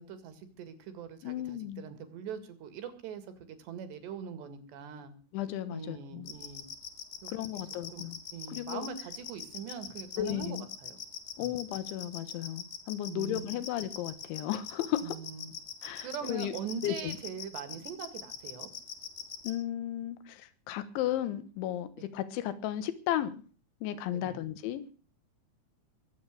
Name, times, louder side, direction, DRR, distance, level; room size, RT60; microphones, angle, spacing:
voice 1, 0.0-5.1 5.7-6.6 7.2-7.3 7.9-8.1 8.3-11.0 11.4-11.6 13.1-13.6 15.0-15.5 16.0-18.7 22.0-22.1 24.1-24.4, right 7 dB, 65° right, 10 dB, 4.0 m, -42 dB
voice 2, 1.2-1.8 5.3-6.3 7.3-8.2 8.5-8.9 10.2-10.7 11.4-15.2 15.8-16.5 16.8-17.2 19.4-23.4 23.8-24.9, left 12 dB, 80° left, 13 dB, 3.6 m, -34 dB
sound 1, 6.3-19.5, left 9 dB, 60° left, 3.6 m, -41 dB
22.0 x 8.9 x 6.6 m, 0.39 s
omnidirectional pair, 5.5 m